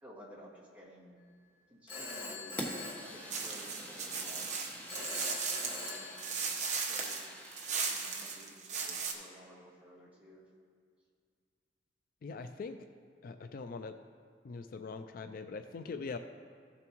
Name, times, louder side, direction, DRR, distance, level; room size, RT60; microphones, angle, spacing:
voice 1, 0.0-1.2 1.7-2.6 3.1-5.3 5.6-7.2 7.7-10.4, equal, 10° right, -6 dB, 2.0 m, -55 dB
Telephone, 1.9-3.8 4.9-6.8, left 3 dB, 30° left, 1.9 m, -44 dB
Fire, 2.6-8.5, equal, 10° left, 1.2 m, -46 dB
sound 1, 3.3-9.1, right 5 dB, 45° right, 1.1 m, -37 dB
voice 2, 12.2-12.8 13.2-13.9 14.4-16.2, left 4 dB, 50° left, 8 dB, 0.3 m, -42 dB
15.5 x 7.0 x 3.0 m, 2.1 s
head